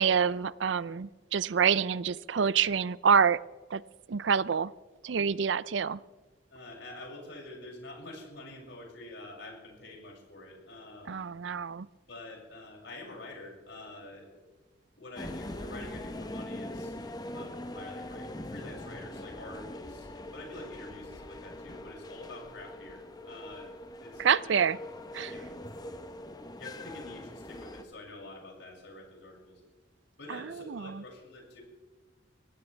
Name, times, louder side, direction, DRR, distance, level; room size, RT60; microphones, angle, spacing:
voice 1, 0.0-3.4 3.7-3.8 4.1-4.7 5.0-6.0 11.1-11.9 24.2-24.8 25.1-25.3 30.3-31.0, right 6 dB, 70° right, 19 dB, 0.5 m, -27 dB
voice 2, 6.5-11.2 12.1-14.3 15.0-17.0 17.3-23.7 24.0-24.5 25.3-25.5 26.5-29.6 30.2-31.6, left 2 dB, 70° left, -2 dB, 6.6 m, -47 dB
sound 1, 15.2-27.8, left 1 dB, 20° left, 1.0 m, -42 dB
24.0 x 17.0 x 3.4 m, 1.4 s
head